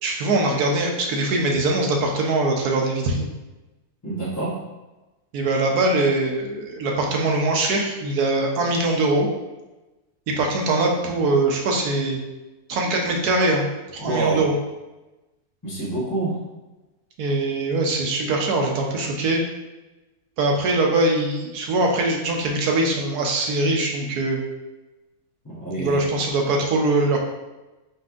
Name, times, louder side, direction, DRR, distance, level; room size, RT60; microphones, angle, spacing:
voice 1, 0.0-3.3 5.3-9.3 10.3-12.2 12.7-13.6 13.9-14.5 17.2-19.4 20.4-24.4 25.8-27.2, right 2 dB, 85° right, 0 dB, 1.3 m, -22 dB
voice 2, 4.0-4.6 14.0-14.5 15.6-16.4 25.4-26.0, right 2 dB, 15° left, -8 dB, 1.0 m, -27 dB
4.4 x 4.2 x 2.5 m, 1.1 s
omnidirectional pair, 1.6 m